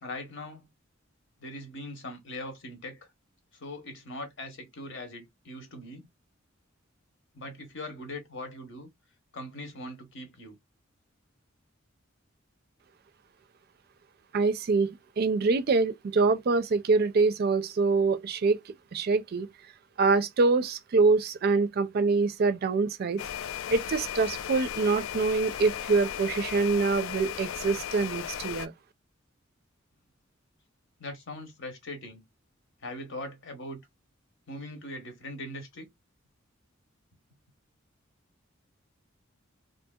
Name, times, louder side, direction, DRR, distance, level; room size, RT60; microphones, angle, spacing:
voice 1, 0.0-0.7 1.4-3.1 3.5-6.1 7.3-8.9 9.3-10.6 31.0-32.2 32.8-33.8 34.5-35.9, left 1 dB, 65° left, 0.9 m, -41 dB
voice 2, 14.3-19.5 20.0-23.2 23.7-28.7, right 4 dB, 50° right, 0.4 m, -25 dB
sound 1, 23.2-28.7, left 10 dB, 80° left, 0.3 m, -36 dB
2.7 x 2.6 x 2.2 m
head